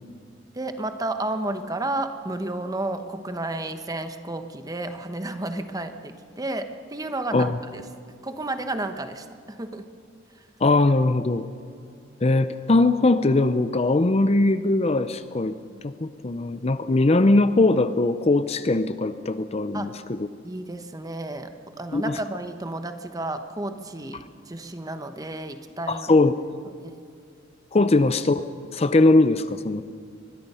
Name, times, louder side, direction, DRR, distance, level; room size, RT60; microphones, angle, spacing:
voice 1, 0.5-7.8 8.2-9.9 10.3-10.5 19.7-19.9 20.4-26.1 26.8-27.0 27.8-27.9, right 2 dB, 20° right, 8 dB, 1.0 m, -32 dB
voice 2, 10.6-11.4 12.2-15.6 15.8-20.2 21.9-22.1 25.9-26.3 27.7-28.4 28.7-29.8, left 2 dB, 30° left, 12 dB, 0.6 m, -20 dB
24.5 x 21.0 x 5.6 m, 2.3 s
head